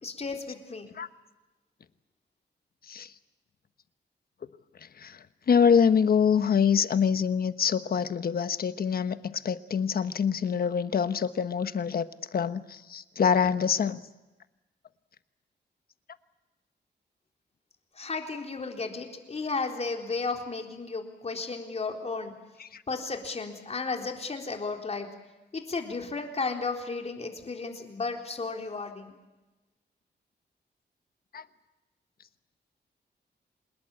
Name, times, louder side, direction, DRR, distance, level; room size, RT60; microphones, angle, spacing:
voice 1, 0.0-0.9 17.9-22.3 22.9-25.1 25.5-29.1, left 4 dB, 35° left, 3 dB, 4.0 m, -34 dB
voice 2, 5.5-14.0 22.6-22.8 31.3-31.4, left 7 dB, 55° left, 12 dB, 1.2 m, -25 dB
26.5 x 21.0 x 8.6 m, 1.0 s
wide cardioid pair, 110°, 18 cm